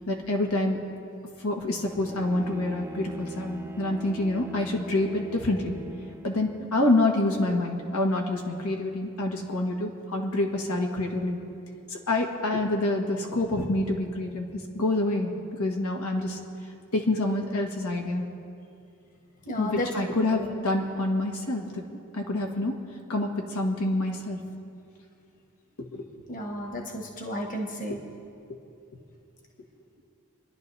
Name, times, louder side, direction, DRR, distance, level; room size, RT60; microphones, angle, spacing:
voice 1, 0.1-0.8 1.4-5.8 6.2-11.4 11.9-15.3 15.6-16.4 16.9-18.3 19.6-21.8 22.1-22.7 23.1-24.4 25.9-26.0 27.9-28.0, left 2 dB, 80° left, 1 dB, 1.7 m, -27 dB
Bowed string instrument, 1.8-6.7, right 2 dB, 10° right, 0.6 m, -43 dB
voice 2, 19.4-20.5 26.3-28.0, equal, 35° left, 1 dB, 1.5 m, -33 dB
28.0 x 11.0 x 3.4 m, 2.5 s
head